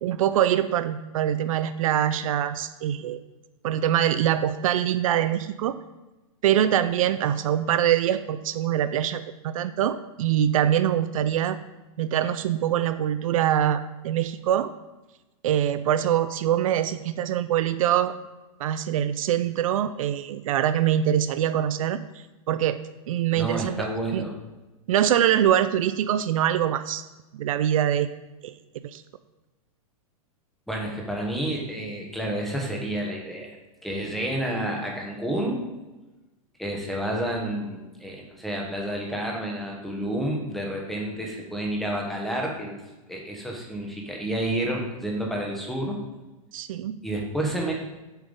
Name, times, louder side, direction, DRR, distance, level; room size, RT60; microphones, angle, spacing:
voice 1, 0.0-3.2 3.6-5.8 6.4-11.6 12.0-14.7 15.4-18.1 18.6-22.0 22.5-22.8 23.1-23.9 24.1-24.2 24.9-27.0 27.3-28.1 28.4-28.5 28.9-29.0 46.5-47.0, right 10 dB, 65° right, 12 dB, 0.4 m, -24 dB
voice 2, 23.3-24.3 30.7-33.5 33.8-35.6 36.6-42.8 43.1-46.0 47.0-47.7, right 1 dB, ahead, -1 dB, 1.1 m, -30 dB
7.1 x 3.7 x 5.2 m, 1.1 s
hypercardioid pair, 145°, 19 cm